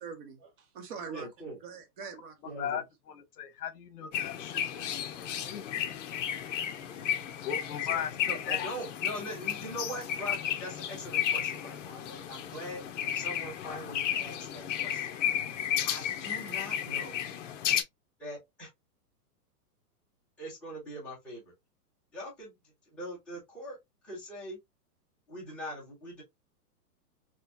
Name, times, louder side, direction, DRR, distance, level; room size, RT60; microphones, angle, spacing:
voice 1, 0.0-1.3 1.6-2.7, right 6 dB, 35° right, 0.9 m, -44 dB
voice 2, 1.1-1.6 2.4-2.8 7.8-15.1 15.8-17.2 18.2-18.7 20.4-21.5 22.1-23.8 24.0-24.6 25.3-26.2, equal, ahead, 0.5 m, -42 dB
voice 3, 3.1-4.6 4.9-5.9 7.4-8.1 8.5-8.6, left 8 dB, 70° left, 1.1 m, -38 dB
sound 1, 4.1-17.8, left 10 dB, 50° left, 0.7 m, -33 dB
4.2 x 2.2 x 2.6 m
hypercardioid pair, 160°, 47 cm